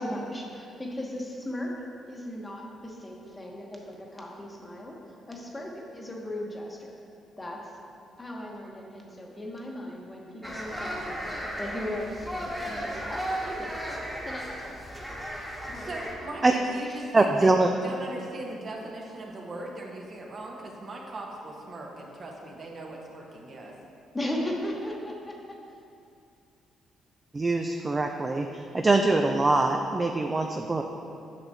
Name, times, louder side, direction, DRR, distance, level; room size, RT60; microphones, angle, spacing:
voice 1, 0.0-1.7 2.1-5.0 5.3-6.9 7.4-7.6 8.2-13.7 14.2-14.8 15.7-16.3 16.8-17.0 24.1-25.6, left 1 dB, 20° left, -1 dB, 1.0 m, -37 dB
sound 1, 10.4-16.1, equal, ahead, 1.2 m, -35 dB
voice 2, 15.3-23.7, right 2 dB, 45° right, -1 dB, 1.0 m, -40 dB
voice 3, 17.1-17.7 27.3-28.5 28.7-30.8, right 2 dB, 25° right, 4 dB, 0.3 m, -23 dB
8.9 x 6.0 x 2.7 m, 2.5 s
cardioid pair, 90°, 0 cm